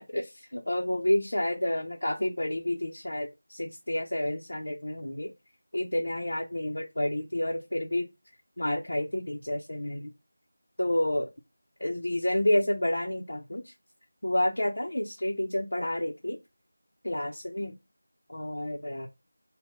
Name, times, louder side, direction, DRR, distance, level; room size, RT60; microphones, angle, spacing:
voice 1, 0.0-5.3 5.7-8.1 8.6-10.1 10.8-11.3 11.8-13.7 14.2-16.4 17.0-17.8 18.3-19.1, left 1 dB, 85° left, 0.6 m, -29 dB
3.6 x 2.1 x 3.8 m
figure-of-eight pair, 180°, 0 cm